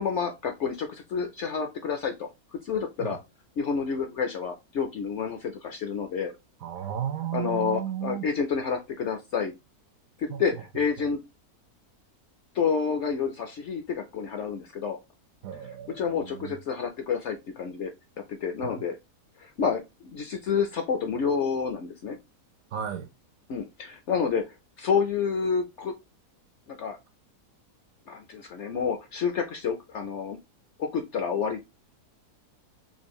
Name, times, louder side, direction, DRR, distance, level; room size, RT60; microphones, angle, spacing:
voice 1, 0.0-3.2 3.6-6.3 7.3-9.5 10.2-11.2 12.5-15.0 15.9-17.9 18.3-18.9 19.4-22.2 23.5-24.4 24.8-25.9 26.7-27.0 28.1-30.4 30.8-31.6, left 6 dB, 65° left, 0.7 m, -29 dB
voice 2, 6.6-8.2 10.3-10.4 15.4-16.6 18.6-18.8 22.7-23.1, right 9 dB, 70° right, 0.9 m, -34 dB
4.4 x 2.5 x 3.0 m
omnidirectional pair, 1.7 m